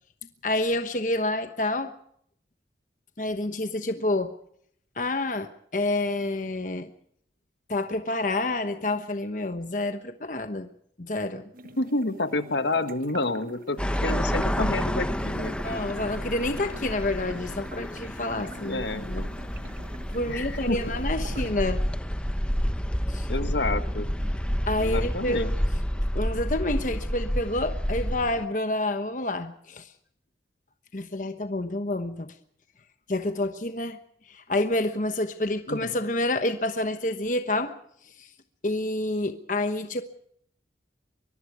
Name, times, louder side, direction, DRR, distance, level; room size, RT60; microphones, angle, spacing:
voice 1, 0.4-1.9 3.2-4.3 5.0-6.9 7.7-10.7 11.0-11.5 15.6-19.3 20.1-21.8 23.1-23.3 24.7-25.5 26.1-29.9 30.9-32.3 33.1-34.0 34.3-37.7 38.0-38.3 38.6-40.0, left 2 dB, 45° left, 8 dB, 1.1 m, -28 dB
sound 1, 11.5-21.5, right 2 dB, 50° right, 1.3 m, -46 dB
voice 2, 11.8-15.6 18.5-19.1 20.3-20.8 23.3-24.1 24.8-25.5 35.7-35.9, left 2 dB, 75° left, 9 dB, 1.5 m, -29 dB
sound 2, 13.8-28.4, equal, 5° left, 0.8 m, -29 dB
24.0 x 22.5 x 4.8 m, 0.66 s
head